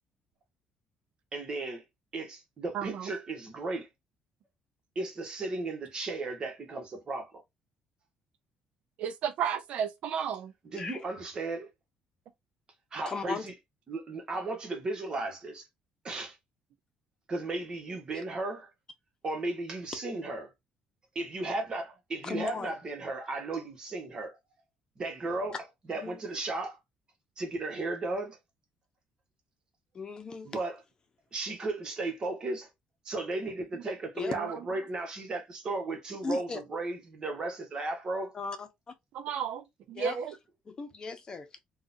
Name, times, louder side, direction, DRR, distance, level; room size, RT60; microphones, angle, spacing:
voice 1, 1.3-1.8 2.1-3.9 4.9-7.4 10.7-11.7 12.9-13.5 13.9-15.7 16.0-16.4 17.3-18.7 19.2-20.5 21.1-24.4 25.0-25.6 25.9-26.8 27.4-28.4 30.4-30.8 31.3-32.7 33.0-38.3, right 2 dB, 35° right, 1.3 m, -35 dB
voice 2, 2.7-3.1 9.0-10.5 34.3-34.5 39.1-40.3, right 8 dB, 70° right, 0.5 m, -33 dB
voice 3, 13.1-13.4 22.2-22.7 25.9-26.2 29.9-30.5 34.2-34.3 36.2-36.6 38.3-38.7 40.0-40.2 40.7-41.5, left 4 dB, 35° left, 0.8 m, -36 dB
3.7 x 2.4 x 2.7 m
cardioid pair, 105°, 2 cm